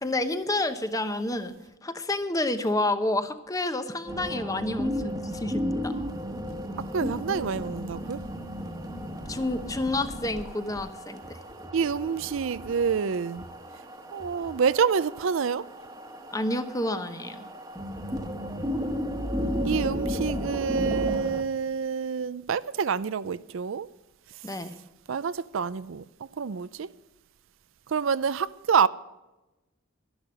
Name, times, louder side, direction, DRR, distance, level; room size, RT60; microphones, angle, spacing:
voice 1, 0.0-1.5 1.8-5.9 9.3-11.4 16.3-17.5 24.4-24.8, left 2 dB, 15° left, 0.8 m, -29 dB
sound 1, 4.1-21.4, equal, 15° right, 1.2 m, -34 dB
voice 2, 6.9-8.2 11.7-13.5 14.1-15.6 19.6-23.9 25.1-26.0 26.4-26.9 27.9-28.9, right 6 dB, 65° right, 0.4 m, -27 dB
12.5 x 11.0 x 6.3 m
head